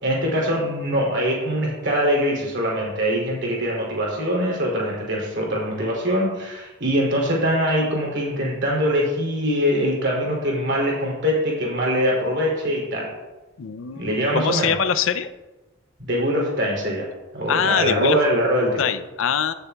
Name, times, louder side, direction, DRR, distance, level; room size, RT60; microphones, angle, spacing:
voice 1, 0.0-13.1 13.9-14.7 16.0-17.1 17.3-18.8, equal, 55° right, -2 dB, 2.9 m, -23 dB
voice 2, 13.6-15.3 17.5-18.2 18.8-19.5, left 7 dB, 65° left, 12 dB, 0.5 m, -23 dB
15.5 x 6.7 x 2.3 m, 1.1 s
head